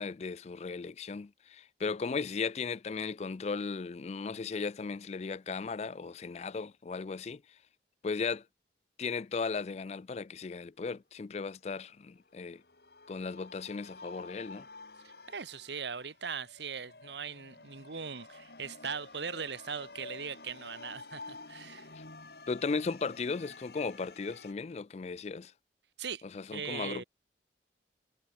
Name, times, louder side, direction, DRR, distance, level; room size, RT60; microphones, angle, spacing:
voice 1, 0.0-7.4 8.0-8.4 9.0-12.6 13.1-14.7 22.0-22.1 22.5-25.5 26.3-27.0, left 4 dB, 35° left, 0.4 m, -36 dB
sound 1, 12.2-24.5, left 3 dB, 60° left, 2.8 m, -50 dB
voice 2, 15.0-21.9 26.0-26.2 26.5-27.0, right 6 dB, 75° right, 1.3 m, -40 dB
head